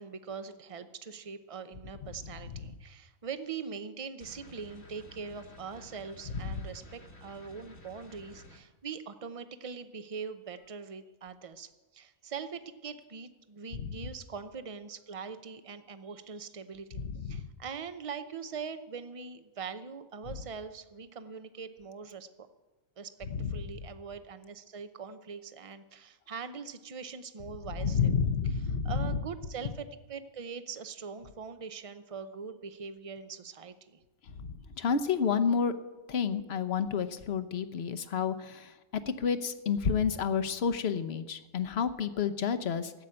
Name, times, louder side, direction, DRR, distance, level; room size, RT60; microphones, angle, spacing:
voice 1, 0.0-22.5 23.0-28.1 28.8-34.0, right 6 dB, 35° right, 10 dB, 0.6 m, -42 dB
sound 1, 4.2-8.6, left 1 dB, 75° left, 1.9 m, -53 dB
voice 2, 17.0-17.4 23.3-23.5 27.8-29.2 34.4-35.7 36.1-38.7 39.2-42.9, left 6 dB, 55° left, 10 dB, 1.0 m, -30 dB
14.5 x 8.1 x 8.8 m, 1.2 s
omnidirectional pair, 1.4 m